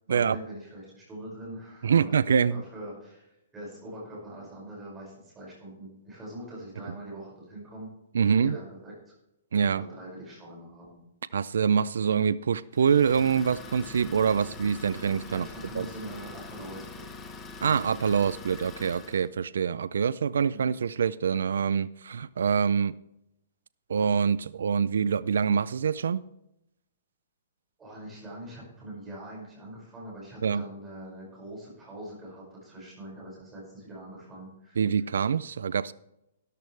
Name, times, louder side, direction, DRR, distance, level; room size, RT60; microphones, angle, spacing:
voice 1, 0.1-2.1 2.5-7.9 8.2-9.1 9.6-11.0 15.3-17.2 20.5-20.6 27.8-34.9, right 1 dB, 10° right, 5.6 m, -43 dB
voice 2, 1.8-2.6 8.1-8.6 9.5-9.8 11.3-15.5 15.7-15.9 17.6-22.9 23.9-26.2 30.4-30.6 34.8-35.9, right 6 dB, 90° right, 0.4 m, -25 dB
Idling, 12.7-19.3, left 4 dB, 15° left, 1.2 m, -44 dB
13.5 x 12.5 x 3.3 m
hypercardioid pair, 175°, 0 cm